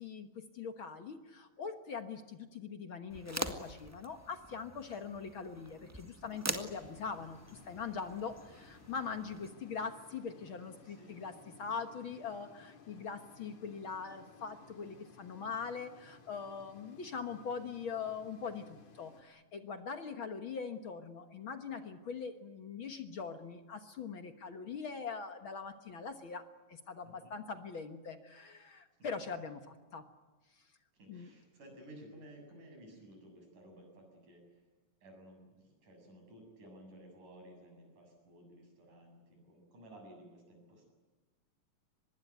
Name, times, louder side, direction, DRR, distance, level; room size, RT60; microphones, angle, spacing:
voice 1, 0.0-26.4 26.7-30.0 31.1-31.3, left 5 dB, 50° left, 8 dB, 1.8 m, -42 dB
sound 1, 3.1-9.5, right 1 dB, 10° right, 0.8 m, -44 dB
sound 2, 6.6-19.2, left 4 dB, 65° left, 4.0 m, -59 dB
voice 2, 10.8-11.2 27.2-27.3 30.9-34.4 35.0-40.9, right 1 dB, 85° right, 3 dB, 9.0 m, -55 dB
24.5 x 21.0 x 9.4 m, 1.3 s
omnidirectional pair, 3.4 m